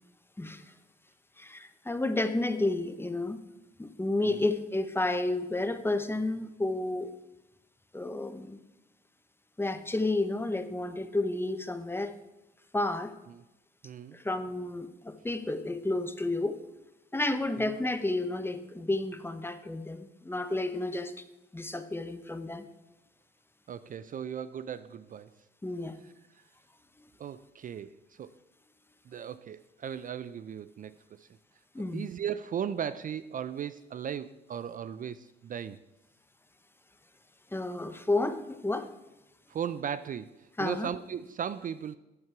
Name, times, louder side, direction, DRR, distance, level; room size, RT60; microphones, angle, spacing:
voice 1, 1.4-3.4 3.8-7.1 7.9-8.6 9.6-12.1 12.7-13.1 14.1-16.6 17.1-21.2 21.5-22.6 25.6-26.0 27.0-27.1 31.7-32.0 37.5-38.9 40.6-40.9, left 2 dB, 10° left, 10 dB, 0.8 m, -31 dB
voice 2, 13.8-14.2 17.6-17.7 23.7-25.3 26.3-26.4 27.2-28.3 29.1-31.3 31.9-35.8 39.5-42.0, right 8 dB, 45° right, 15 dB, 0.4 m, -37 dB
9.6 x 7.3 x 4.7 m, 0.99 s
cardioid pair, 90°, 20 cm